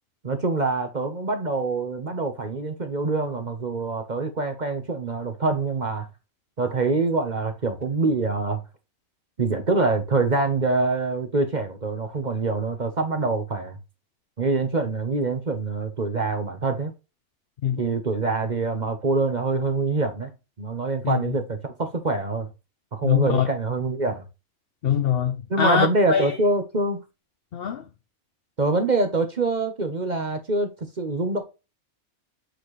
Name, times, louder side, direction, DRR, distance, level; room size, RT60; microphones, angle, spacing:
voice 1, 0.2-6.1 6.6-8.6 9.4-13.8 14.4-16.9 17.8-20.3 20.6-22.5 22.9-24.2 25.5-27.0 28.6-31.4, right 3 dB, 35° right, 1.0 m, -25 dB
voice 2, 23.0-23.5 24.8-26.4 27.5-27.8, left 8 dB, 55° left, 0.7 m, -23 dB
8.1 x 4.3 x 3.1 m
omnidirectional pair, 1.5 m